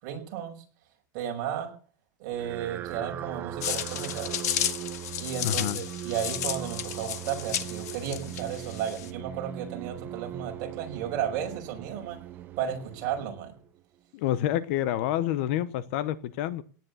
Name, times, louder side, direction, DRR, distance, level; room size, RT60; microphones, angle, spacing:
voice 1, 0.0-0.6 1.1-1.7 2.2-4.5 5.2-12.2 12.6-13.6, right 9 dB, 35° right, 5.5 m, -34 dB
sound 1, 2.3-13.8, right 13 dB, 20° right, 0.7 m, -40 dB
sound 2, 3.6-9.1, left 12 dB, 55° left, 1.8 m, -33 dB
voice 2, 5.4-5.8 14.1-16.6, left 12 dB, 40° left, 0.9 m, -28 dB
18.0 x 9.6 x 8.1 m
supercardioid pair, 175°, 10 cm